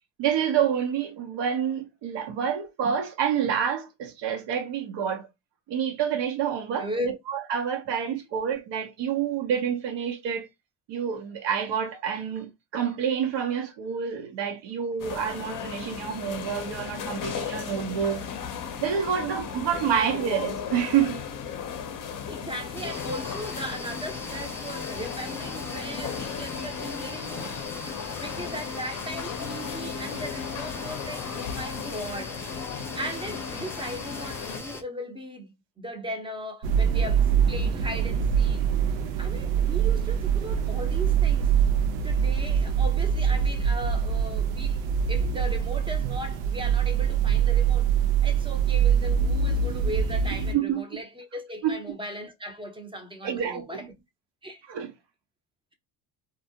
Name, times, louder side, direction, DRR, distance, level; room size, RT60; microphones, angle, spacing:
voice 1, 0.2-5.3 5.7-10.5 10.9-18.2 18.8-21.2 50.5-50.8 51.6-51.8 53.2-53.8 54.7-54.9, right 8 dB, 60° right, 0.9 m, -28 dB
voice 2, 6.8-7.2 22.0-32.4 32.9-38.7 39.2-47.9 48.2-53.9 54.4-54.6, equal, 10° right, 0.7 m, -38 dB
sound 1, 15.0-34.6, left 7 dB, 40° left, 0.7 m, -36 dB
sound 2, 22.7-34.8, left 2 dB, 5° left, 0.3 m, -39 dB
sound 3, 36.6-50.5, right 7 dB, 80° right, 0.6 m, -24 dB
2.3 x 2.1 x 2.7 m
supercardioid pair, 75°, 48 cm